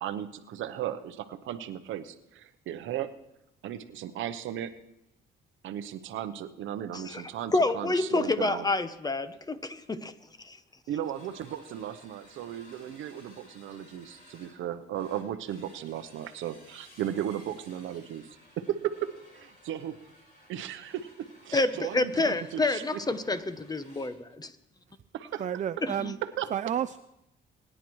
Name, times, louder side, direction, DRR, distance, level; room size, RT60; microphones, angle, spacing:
voice 1, 0.0-3.1 3.6-4.7 5.6-8.7 10.9-18.3 18.6-19.1 19.3-20.0 20.5-22.8 25.1-25.4 26.4-26.5, right 10 dB, 80° right, 10 dB, 0.8 m, -36 dB
voice 2, 6.9-10.1 10.4-10.6 21.5-24.5 25.8-26.1, left 2 dB, 20° left, 12 dB, 0.7 m, -28 dB
sound 1, 9.5-9.6 9.8-10.0 10.3-10.5 10.9-24.1, left 1 dB, 50° left, 4.5 m, -57 dB
voice 3, 25.4-26.2 26.5-27.0, right 9 dB, 40° right, 12 dB, 0.4 m, -31 dB
21.5 x 10.0 x 3.1 m, 0.85 s
cardioid pair, 90°, 20 cm